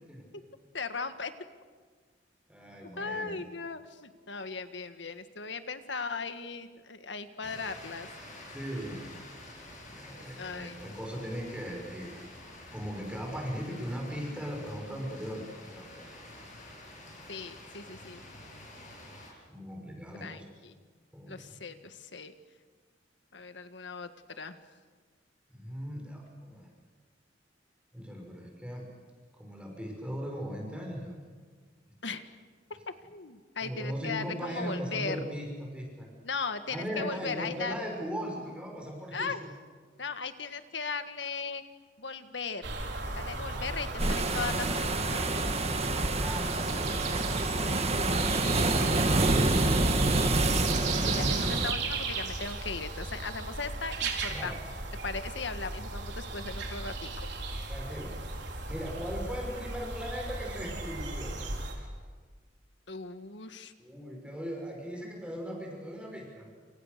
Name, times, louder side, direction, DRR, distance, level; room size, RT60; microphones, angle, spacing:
voice 1, 0.7-1.3 3.0-8.1 10.4-10.8 17.3-18.2 20.2-20.7 21.3-22.3 23.3-24.1 24.4-24.6 32.0-32.2 32.9-35.2 36.2-37.8 39.1-39.4 40.0-41.6 42.0-42.7 43.2-45.2 51.1-54.5 55.0-57.1 62.9-63.7, left 4 dB, 70° left, 9 dB, 1.8 m, -37 dB
voice 2, 2.5-3.4 8.5-9.1 9.9-12.2 12.7-16.3 19.5-20.4 21.1-21.4 25.5-26.7 27.9-28.9 29.3-31.2 33.6-36.1 36.7-39.5 43.5-43.7 46.1-47.0 54.3-54.6 57.7-58.1 58.7-61.3 61.7-61.9 63.8-66.5, equal, 5° right, 0 dB, 5.7 m, -38 dB
sound 1, 7.4-19.3, left 1 dB, 40° left, 8.0 m, -48 dB
sound 2, 42.6-61.7, right 3 dB, 65° right, 4.3 m, -35 dB
sound 3, 44.0-51.7, right 2 dB, 35° right, 1.8 m, -27 dB
28.5 x 28.5 x 6.8 m, 1.5 s
head